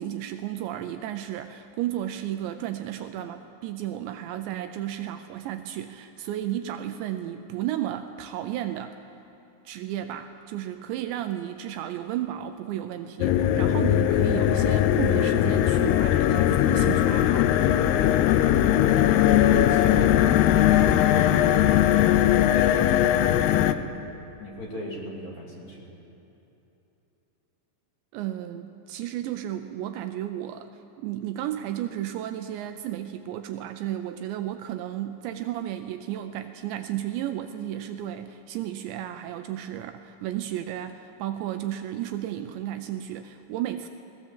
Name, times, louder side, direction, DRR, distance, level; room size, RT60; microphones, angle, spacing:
voice 1, 0.0-9.0 9.7-17.5 28.1-30.7 31.0-43.9, right 12 dB, 80° right, 8 dB, 2.8 m, -33 dB
sound 1, 13.2-23.7, left 12 dB, 85° left, 2.3 m, -20 dB
voice 2, 18.4-20.4 20.7-23.9 24.4-25.8, equal, 40° left, -2 dB, 3.6 m, -35 dB
21.5 x 18.5 x 7.4 m, 3.0 s
omnidirectional pair, 5.5 m